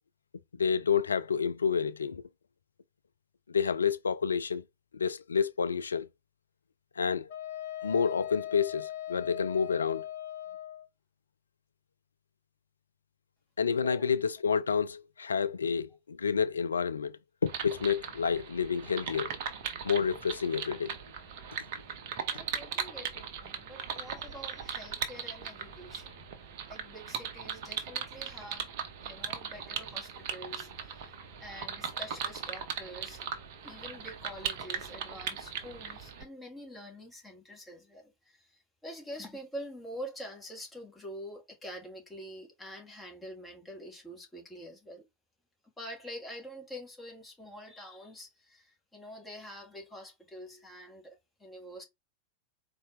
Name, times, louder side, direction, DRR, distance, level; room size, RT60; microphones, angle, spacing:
voice 1, 0.6-2.2 3.5-4.6 4.9-6.1 7.0-7.3 7.8-10.0 13.6-19.3 19.8-20.9, left 6 dB, 75° left, 0.3 m, -29 dB
Wind instrument woodwind instrument, 7.3-10.9, left 12 dB, 50° left, 1.0 m, -39 dB
sound 1, 17.5-36.2, right 7 dB, 50° right, 0.7 m, -39 dB
voice 2, 22.3-26.1 26.7-28.7 29.0-33.3 33.6-45.0 45.8-51.8, equal, 10° left, 1.6 m, -46 dB
4.2 x 2.5 x 3.1 m
figure-of-eight pair, 90°, 0 cm